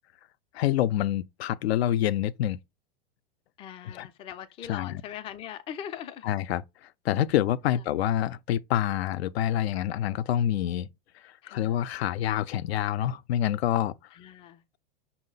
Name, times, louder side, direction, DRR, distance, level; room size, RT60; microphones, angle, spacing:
voice 1, 0.5-2.6 3.9-4.1 4.7-5.0 6.2-6.6 7.0-10.9 11.2-13.9, left 11 dB, 80° left, 0.5 m, -27 dB
voice 2, 3.6-6.3 7.7-7.8 11.4-11.8 14.1-14.6, left 9 dB, 20° left, 0.3 m, -41 dB
5.6 x 2.1 x 3.7 m
hypercardioid pair, 125°, 31 cm